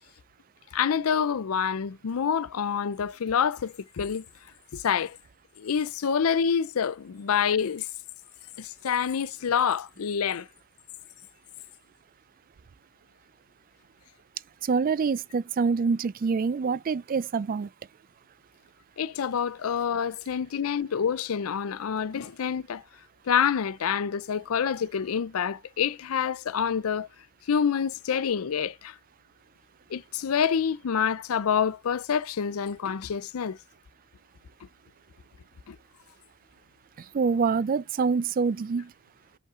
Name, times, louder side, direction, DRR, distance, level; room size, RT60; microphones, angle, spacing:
voice 1, 0.7-4.2 4.7-5.2 5.6-7.9 8.6-10.5 19.0-22.8 23.3-27.1 27.5-28.9 29.9-33.6 35.7-35.8, left 7 dB, 80° left, 0.5 m, -27 dB
voice 2, 14.6-17.7 37.0-38.9, right 5 dB, 40° right, 0.3 m, -26 dB
6.3 x 5.3 x 3.8 m
head